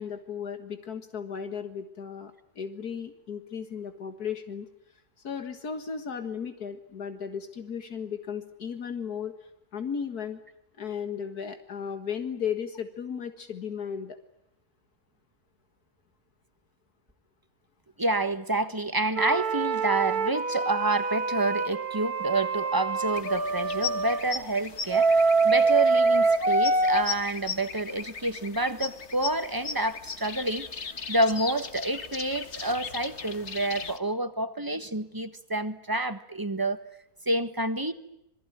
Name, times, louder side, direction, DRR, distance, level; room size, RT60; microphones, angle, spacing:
voice 1, 0.0-4.7 5.2-9.3 9.7-10.4 10.8-14.2, left 7 dB, 75° left, 8 dB, 2.2 m, -35 dB
voice 2, 18.0-36.8 37.2-37.9, right 2 dB, 15° right, 10 dB, 1.4 m, -28 dB
sound 1, 19.2-24.2 24.9-27.0, right 3 dB, 70° right, 2.5 m, -25 dB
sound 2, 23.1-34.0, left 5 dB, 50° left, 1.7 m, -38 dB
27.0 x 21.5 x 9.4 m, 0.81 s
omnidirectional pair, 1.6 m